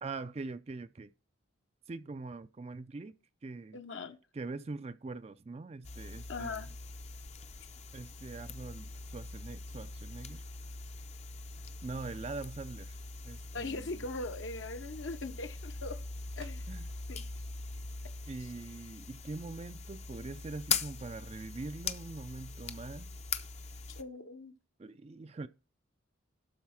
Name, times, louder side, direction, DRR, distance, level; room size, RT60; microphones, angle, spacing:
voice 1, 0.0-1.1 1.9-3.1 3.4-3.8 4.3-6.6 7.9-10.4 11.8-13.0 13.2-13.9 16.7-16.9 18.3-23.1 24.8-25.5, right 3 dB, 30° right, 0.3 m, -43 dB
voice 2, 3.7-4.2 6.3-6.7 13.5-16.0 16.4-16.7 17.1-17.2 23.9-24.5, left 3 dB, 60° left, 0.8 m, -40 dB
sound 1, 5.8-24.0, left 5 dB, 30° left, 0.5 m, -42 dB
sound 2, 16.4-16.7 20.4-20.5 20.7-21.1, right 5 dB, 60° right, 0.7 m, -49 dB
12.0 x 4.1 x 5.6 m
head